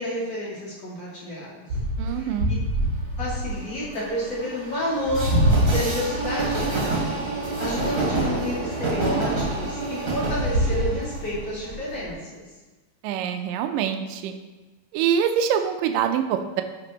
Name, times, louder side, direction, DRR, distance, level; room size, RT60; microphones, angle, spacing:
voice 1, 0.0-1.7 2.1-2.3 3.2-5.3 5.7-7.2 7.5-12.4, equal, 35° left, -8 dB, 2.9 m, -30 dB
Train, 1.7-12.1, right 1 dB, 40° right, 2.2 m, -25 dB
voice 2, 2.0-2.5 13.0-14.4 14.9-16.6, right 8 dB, 80° right, 6 dB, 2.1 m, -25 dB
10.0 x 5.9 x 3.1 m, 1.2 s
omnidirectional pair, 4.2 m